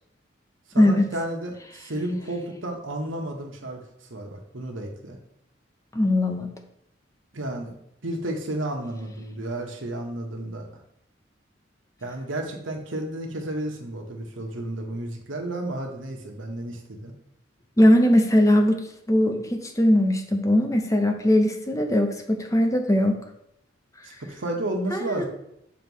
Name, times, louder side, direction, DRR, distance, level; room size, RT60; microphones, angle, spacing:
voice 1, 0.7-3.8 4.1-5.2 7.3-7.7 8.0-10.7 12.0-17.1 24.0-25.3, right 1 dB, 90° right, 2 dB, 1.2 m, -32 dB
voice 2, 5.9-6.5 17.8-23.2 24.9-25.3, left 1 dB, 15° left, 4 dB, 0.7 m, -20 dB
6.7 x 3.2 x 5.4 m, 0.77 s
head